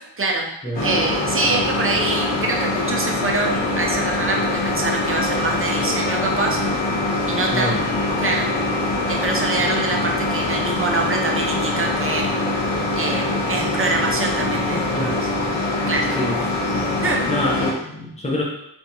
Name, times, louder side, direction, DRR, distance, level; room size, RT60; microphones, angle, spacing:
voice 1, 0.2-0.5 0.8-6.6 7.3-7.8 8.2-8.5 9.1-12.5 12.9-13.2 13.5-15.2 15.9-16.2 17.0-17.2, right 3 dB, 30° right, 0 dB, 0.7 m, -24 dB
sound 1, 0.7-17.7, left 2 dB, 80° left, 1.3 m, -23 dB
voice 2, 7.5-7.9 14.7-15.2 16.2-16.4 17.3-18.4, left 1 dB, 15° left, -3 dB, 0.9 m, -25 dB
3.6 x 3.4 x 2.9 m, 0.77 s
wide cardioid pair, 95°, 43 cm